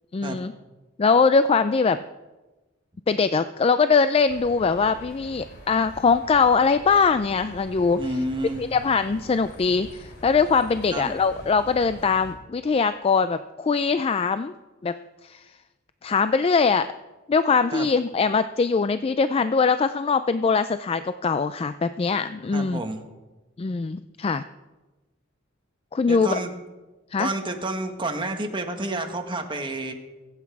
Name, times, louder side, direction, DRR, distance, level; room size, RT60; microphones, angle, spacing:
voice 1, 0.1-0.5 1.0-2.0 3.1-8.0 8.6-14.5 14.8-14.9 15.2-15.4 16.0-16.9 17.3-22.8 23.6-24.4 25.9-26.4 27.1-27.3, left 5 dB, 30° left, 12 dB, 0.3 m, -22 dB
sound 1, 4.3-12.3, left 1 dB, 60° left, 3.1 m, -44 dB
voice 2, 8.0-8.7 10.9-11.1 17.7-17.9 22.5-23.0 26.1-26.5 27.2-29.9, right 2 dB, 25° right, 4 dB, 1.4 m, -29 dB
22.5 x 8.1 x 4.7 m, 1.2 s
head